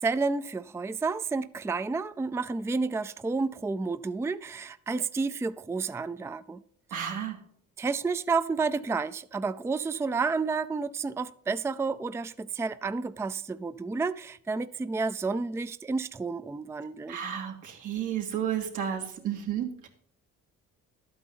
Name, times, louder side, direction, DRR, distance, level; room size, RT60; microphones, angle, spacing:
voice 1, 0.0-6.6 6.9-7.1 7.8-17.2, right 4 dB, 10° right, 0.4 m, -30 dB
voice 2, 6.9-7.4 17.1-19.9, right 9 dB, 85° right, 2.4 m, -32 dB
12.0 x 8.6 x 3.9 m
cardioid pair, 90°, 30 cm